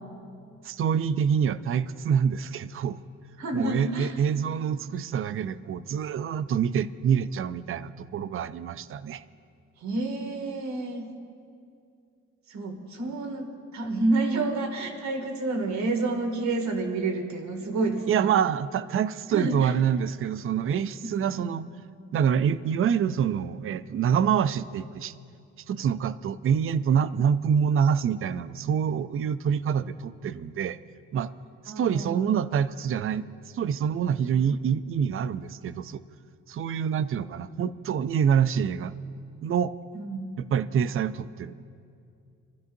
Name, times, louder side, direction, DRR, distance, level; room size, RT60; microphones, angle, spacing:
voice 1, 0.6-3.0 3.5-9.2 18.1-21.7 22.1-25.1 25.7-30.8 31.1-31.3 31.6-33.3 33.5-36.0 36.5-38.9 39.4-39.7 40.4-41.5, right 7 dB, 45° right, 14 dB, 0.5 m, -26 dB
voice 2, 3.4-4.1 9.8-11.1 12.5-18.3 19.3-19.7 21.3-21.5 31.7-32.3 39.9-40.4, right 2 dB, 65° right, 3 dB, 2.3 m, -29 dB
26.5 x 13.5 x 2.7 m, 2.4 s
cardioid pair, 90°, 30 cm